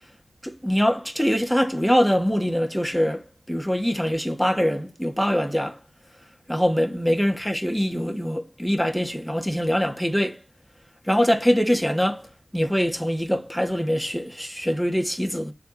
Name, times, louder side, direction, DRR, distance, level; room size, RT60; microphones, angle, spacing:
voice 1, 0.4-5.8 6.5-10.4 11.0-12.3 12.5-15.5, equal, 5° left, 2.0 m, -23 dB
7.0 x 3.7 x 4.2 m
cardioid pair, 45°, 0 cm